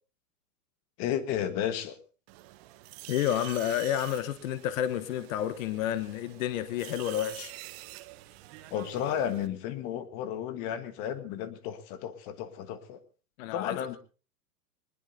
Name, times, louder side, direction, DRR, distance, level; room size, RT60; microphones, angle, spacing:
voice 1, 1.0-2.0 8.7-13.0 13.5-14.0, left 9 dB, 35° left, 11 dB, 1.5 m, -33 dB
sound 1, 2.3-9.5, right 17 dB, 40° right, 1.1 m, -47 dB
voice 2, 3.1-7.5 13.4-13.8, left 11 dB, 55° left, 12 dB, 1.2 m, -30 dB
21.5 x 19.5 x 2.8 m, 0.37 s
hypercardioid pair, 135°, 49 cm